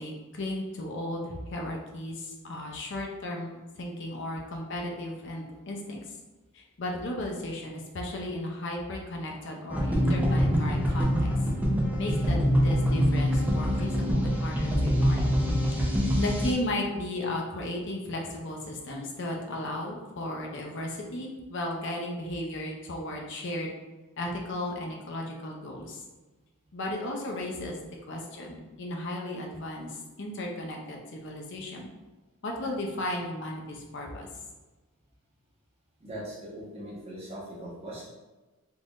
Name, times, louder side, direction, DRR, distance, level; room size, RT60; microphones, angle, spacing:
voice 1, 0.0-6.0 6.5-11.3 12.0-15.3 16.2-23.7 24.2-26.0 26.7-27.8 28.1-31.9 32.4-34.3, left 1 dB, 55° left, 0 dB, 0.6 m, -35 dB
sound 1, 9.7-16.5, equal, 5° right, 0.5 m, -25 dB
voice 2, 36.0-38.1, right 1 dB, 30° right, -6 dB, 1.0 m, -40 dB
3.7 x 2.5 x 3.0 m, 1.2 s
head